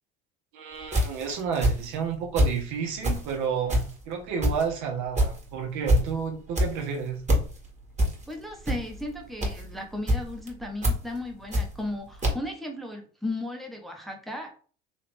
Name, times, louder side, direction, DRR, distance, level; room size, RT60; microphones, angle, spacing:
voice 1, 0.5-7.2, right 6 dB, 60° right, 1.1 m, -31 dB
sound 1, 0.8-2.6 3.0-12.0 12.2-12.3, equal, 20° right, 1.4 m, -26 dB
voice 2, 8.3-14.5, left 1 dB, ahead, 0.9 m, -35 dB
3.4 x 2.9 x 3.3 m
hypercardioid pair, 70°, 32 cm